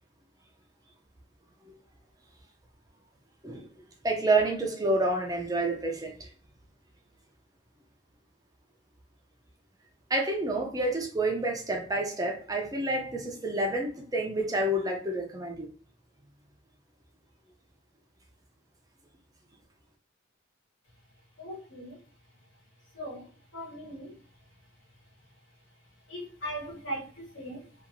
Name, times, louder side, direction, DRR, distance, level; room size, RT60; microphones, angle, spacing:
voice 1, 4.0-6.3 10.1-15.7, right 2 dB, 20° right, 0.5 m, -28 dB
voice 2, 21.4-22.0 22.9-24.2 26.1-27.7, right 1 dB, 75° left, 1.3 m, -39 dB
2.8 x 2.5 x 2.5 m
head